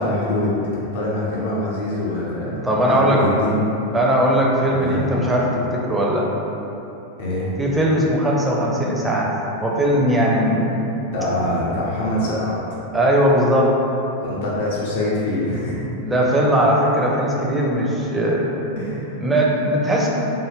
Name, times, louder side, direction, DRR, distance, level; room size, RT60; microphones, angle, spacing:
voice 1, 0.0-3.6 4.6-5.3 7.2-7.5 11.1-12.6 14.2-15.8 18.8-19.2, left 1 dB, 55° left, -6 dB, 0.6 m, -24 dB
voice 2, 2.6-3.2 3.9-6.3 7.6-9.3 9.6-11.0 12.9-13.7 16.0-18.5 19.2-20.1, equal, 10° right, -3 dB, 0.5 m, -19 dB
3.4 x 2.1 x 3.1 m, 3.0 s
figure-of-eight pair, 90°, 0 cm